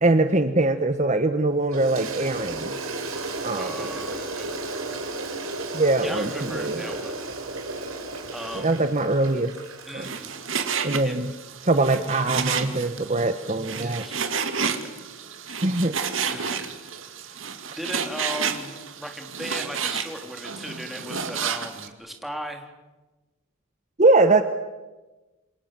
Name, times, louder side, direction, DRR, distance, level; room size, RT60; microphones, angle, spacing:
voice 1, 0.0-2.8 3.4-3.8 5.7-6.8 8.6-9.6 9.9-10.1 10.8-11.3 11.6-14.0 15.6-16.0 24.0-24.4, right 2 dB, 35° right, 9 dB, 1.2 m, -22 dB
Toilet flush, 1.7-11.0, right 2 dB, 85° right, 5.6 m, -34 dB
voice 2, 3.5-4.5 6.0-7.1 8.3-8.8 9.8-10.4 11.0-11.3 13.7-14.3 14.6-15.0 16.2-16.7 17.2-22.7, equal, ahead, 3 dB, 3.4 m, -37 dB
Frying (food), 10.0-21.9, right 6 dB, 70° right, 2.5 m, -31 dB
28.5 x 27.5 x 7.6 m, 1.2 s
head